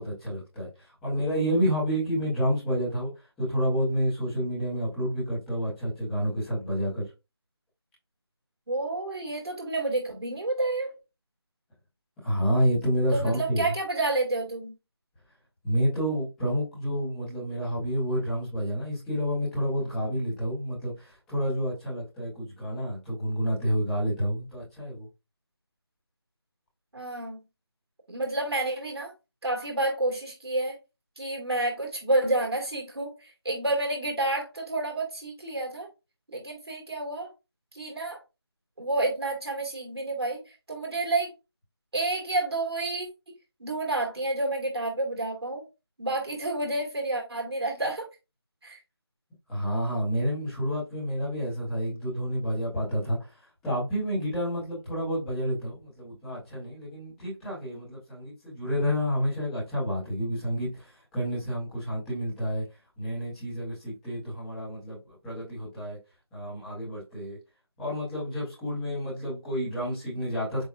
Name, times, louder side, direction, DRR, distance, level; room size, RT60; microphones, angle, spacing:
voice 1, 0.0-7.1 12.2-13.6 15.6-25.1 49.5-62.6 63.0-66.0 66.3-67.4 67.8-70.6, equal, ahead, 1.1 m, -29 dB
voice 2, 8.7-10.9 13.1-14.7 26.9-27.4 28.1-29.1 29.4-30.8 31.2-35.9 36.3-37.3 37.7-38.2 38.8-40.4 40.7-41.3 41.9-43.1 43.6-45.6 46.0-48.1 48.6-48.8, right 2 dB, 70° right, 2.3 m, -29 dB
7.3 x 2.6 x 2.5 m
figure-of-eight pair, 175°, 14 cm